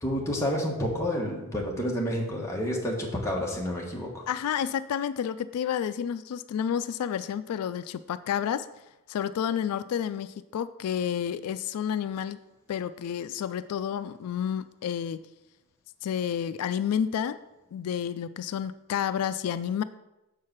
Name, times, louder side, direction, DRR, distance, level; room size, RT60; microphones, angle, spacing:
voice 1, 0.0-4.2, equal, 15° left, -2 dB, 1.2 m, -29 dB
voice 2, 4.3-8.7 9.1-12.4 12.7-15.2 16.0-17.4 17.7-19.8, left 8 dB, 85° left, 13 dB, 0.3 m, -30 dB
6.4 x 4.7 x 5.9 m, 0.98 s
head